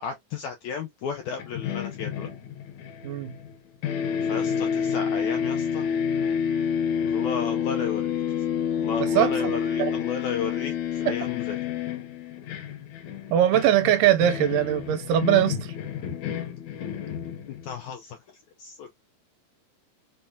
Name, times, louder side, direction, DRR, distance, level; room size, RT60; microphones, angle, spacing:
voice 1, 0.0-2.3 4.3-5.9 7.1-8.2 8.8-11.6 16.1-16.2 17.6-18.2 18.6-18.9, left 6 dB, 85° left, 1.6 m, -34 dB
sound 1, 1.4-3.6 3.8-17.8, left 7 dB, 70° left, 2.0 m, -29 dB
voice 2, 9.0-9.5 9.8-10.0 11.1-11.2 13.3-15.7, right 11 dB, 85° right, 2.1 m, -21 dB
5.5 x 2.1 x 2.3 m
omnidirectional pair, 3.9 m